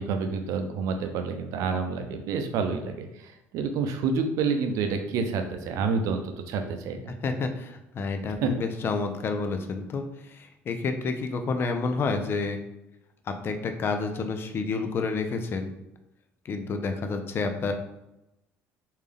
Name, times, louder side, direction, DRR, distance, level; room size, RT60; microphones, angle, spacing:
voice 1, 0.0-7.1 8.4-8.5, right 5 dB, 70° right, 6 dB, 0.5 m, -28 dB
voice 2, 7.2-10.0 10.3-12.6 13.3-15.7 16.4-17.7, left 4 dB, 40° left, 6 dB, 0.5 m, -29 dB
3.5 x 2.7 x 3.4 m, 0.90 s
supercardioid pair, 95°, 6 cm